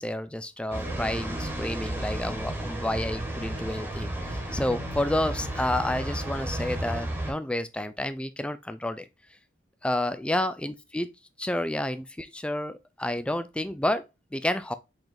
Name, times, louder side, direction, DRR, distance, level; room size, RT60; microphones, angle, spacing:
voice 1, 0.0-9.1 9.8-11.1 11.4-14.0 14.3-14.7, left 1 dB, 5° left, 0.3 m, -30 dB
sound 1, 0.7-7.3, right 1 dB, 10° right, 1.4 m, -33 dB
4.9 x 3.9 x 2.6 m
head